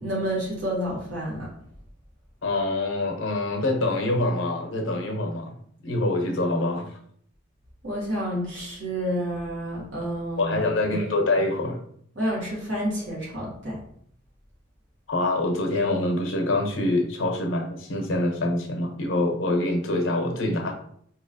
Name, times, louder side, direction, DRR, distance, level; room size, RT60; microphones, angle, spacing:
voice 1, 0.0-1.5 7.8-10.7 12.1-13.8, equal, 70° right, -6 dB, 1.3 m, -29 dB
voice 2, 2.4-5.5 5.8-6.9 10.4-11.8 15.1-20.7, left 2 dB, 85° left, 3 dB, 0.8 m, -25 dB
3.9 x 2.9 x 2.6 m, 0.65 s
head